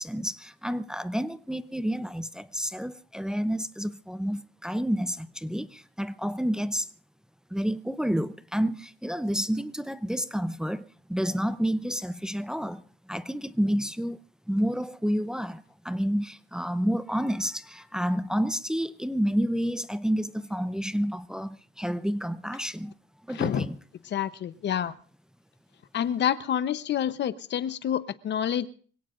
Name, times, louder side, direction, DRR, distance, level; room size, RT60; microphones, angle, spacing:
voice 1, 0.0-6.9 7.5-12.8 13.1-14.2 14.5-22.9 23.3-23.8, equal, 5° right, 0.7 m, -29 dB
voice 2, 23.3-23.7 24.0-24.9 25.9-28.7, left 9 dB, 65° left, 0.9 m, -28 dB
24.5 x 17.0 x 2.5 m
cardioid pair, 90°, 20 cm